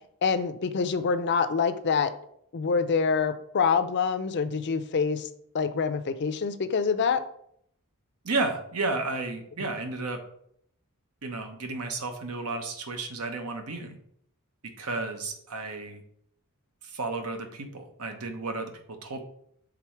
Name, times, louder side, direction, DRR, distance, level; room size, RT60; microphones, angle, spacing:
voice 1, 0.2-2.1 2.5-5.3 5.5-7.2, left 5 dB, 50° left, 10 dB, 0.5 m, -26 dB
voice 2, 8.2-10.2 11.2-14.0 14.6-16.0 16.8-19.2, right 3 dB, 85° right, 6 dB, 1.0 m, -32 dB
6.1 x 3.7 x 4.5 m, 0.70 s
head